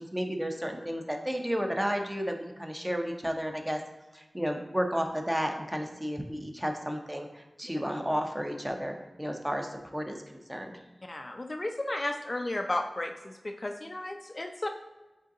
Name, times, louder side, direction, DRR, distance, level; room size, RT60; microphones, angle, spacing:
voice 1, 0.0-3.8 4.1-10.2 10.5-10.8, equal, 10° right, 3 dB, 0.6 m, -32 dB
voice 2, 11.1-14.7, left 1 dB, 35° left, 4 dB, 0.3 m, -34 dB
5.0 x 3.9 x 2.7 m, 1.1 s
wide cardioid pair, 70°, 0 cm